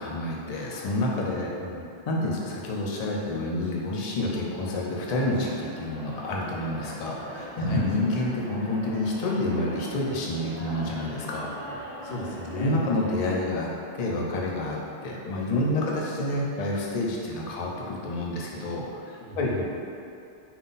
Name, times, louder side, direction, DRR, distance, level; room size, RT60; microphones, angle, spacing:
voice 1, 0.0-1.5 2.1-11.5 12.5-13.7 14.0-19.5, left 1 dB, 50° left, -3 dB, 0.4 m, -28 dB
voice 2, 1.3-1.8 7.6-7.9 12.0-12.8 19.2-19.8, left 1 dB, 70° left, -3 dB, 0.8 m, -36 dB
sound 1, 5.2-13.5, equal, 10° left, 0.9 m, -41 dB
3.7 x 2.3 x 3.9 m, 2.6 s
omnidirectional pair, 1.1 m